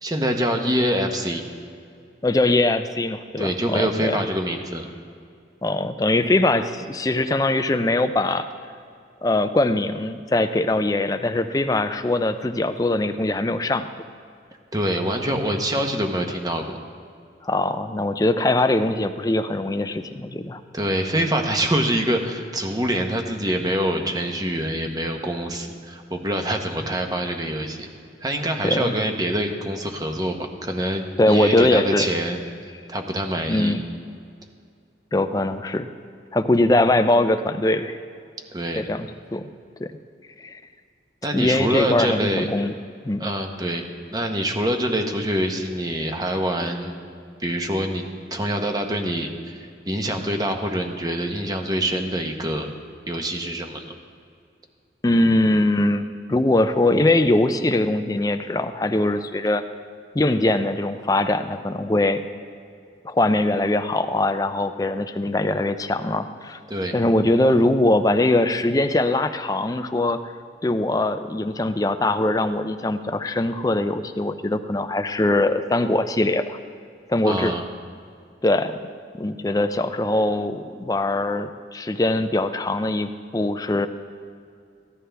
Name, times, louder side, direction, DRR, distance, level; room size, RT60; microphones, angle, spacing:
voice 1, 0.0-1.4 3.4-4.9 14.7-16.8 20.7-27.9 28.2-32.4 32.9-33.7 38.5-38.9 41.2-42.5 43.2-47.0 47.4-48.0 48.3-52.7 53.1-54.0 66.7-66.9 77.2-77.6, right 1 dB, 20° right, 4 dB, 0.9 m, -25 dB
voice 2, 2.2-4.2 5.6-8.5 9.2-13.9 17.4-20.6 28.6-28.9 31.2-32.1 33.5-33.8 35.1-35.9 36.3-38.0 38.8-39.4 39.8-39.9 40.4-40.6 41.3-42.7 43.0-43.2 55.0-59.6 60.1-62.2 63.0-66.6 66.9-70.3 70.6-76.6 77.1-77.5 78.4-78.8 79.1-83.9, left 2 dB, 20° left, 10 dB, 0.4 m, -22 dB
15.5 x 11.0 x 3.4 m, 2.4 s
head